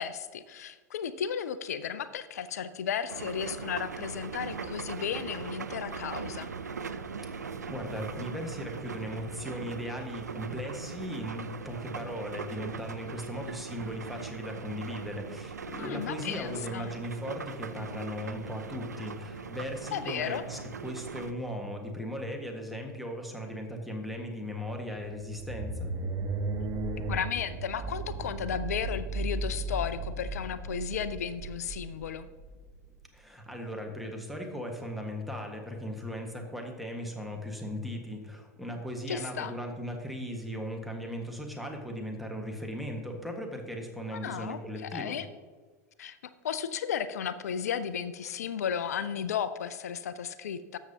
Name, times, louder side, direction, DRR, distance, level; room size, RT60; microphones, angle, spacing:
voice 1, 0.0-6.5 15.8-16.9 19.9-20.4 27.0-32.3 39.1-39.6 44.1-45.3 46.0-46.2 46.4-50.8, left 8 dB, 70° left, 14 dB, 0.4 m, -34 dB
sound 1, 3.1-21.3, right 5 dB, 85° right, 0.4 m, -40 dB
voice 2, 7.7-25.9 33.1-45.1, equal, ahead, 1 dB, 1.5 m, -38 dB
sound 2, 25.0-33.0, right 2 dB, 35° right, 1.1 m, -35 dB
13.0 x 7.1 x 2.8 m, 1.4 s
figure-of-eight pair, 80°, 9 cm